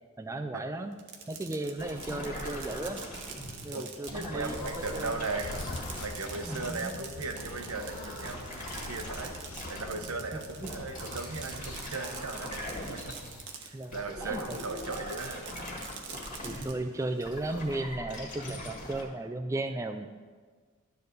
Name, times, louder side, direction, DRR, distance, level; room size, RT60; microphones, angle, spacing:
voice 1, 0.2-0.9 1.3-3.0 3.6-5.2 6.5-7.0 10.3-10.7 13.7-14.0 14.2-14.6 16.4-20.1, right 2 dB, 15° right, 7 dB, 0.3 m, -35 dB
Fireworks, 0.9-13.9 14.2-16.7, right 6 dB, 55° right, 0.9 m, -45 dB
sound 1, 1.8-7.0 7.3-10.2 10.6-13.5 13.9-19.1, left 1 dB, 35° left, 1.7 m, -42 dB
voice 2, 3.7-5.6 6.0-9.3 9.7-13.1 13.6-15.4, right 3 dB, 85° right, 5 dB, 1.0 m, -37 dB
sound 2, 4.1-11.8, left 2 dB, 80° left, 0.8 m, -45 dB
12.0 x 4.1 x 6.6 m, 1.5 s
head